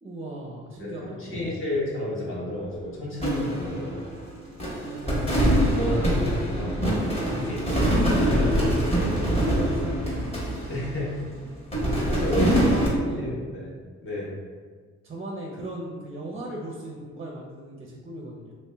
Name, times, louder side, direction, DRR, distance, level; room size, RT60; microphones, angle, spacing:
voice 1, 0.0-1.6 4.8-5.6 9.5-10.3 12.3-13.3 15.0-18.5, right 1 dB, 20° right, -2 dB, 0.6 m, -37 dB
voice 2, 0.8-4.0 5.4-7.0 7.3-7.8 8.3-8.9 10.7-11.1 12.1-12.5 13.0-13.7 14.0-14.3, left 1 dB, 40° left, -6 dB, 1.3 m, -32 dB
sound 1, 3.2-4.3 4.6-11.3 11.7-12.9, equal, 20° left, 1.2 m, -24 dB
3.0 x 3.0 x 3.4 m, 1.5 s
cardioid pair, 90°, 30 cm